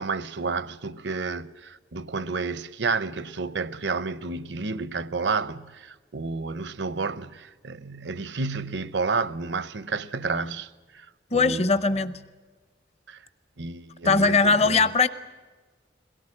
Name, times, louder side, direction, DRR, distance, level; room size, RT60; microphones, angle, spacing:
voice 1, 0.0-11.1 11.3-11.7 13.1-13.2 13.6-14.9, right 4 dB, 80° right, 0.8 m, -31 dB
voice 2, 11.3-12.2 14.0-15.1, left 4 dB, 35° left, 0.7 m, -21 dB
22.5 x 17.5 x 9.8 m
head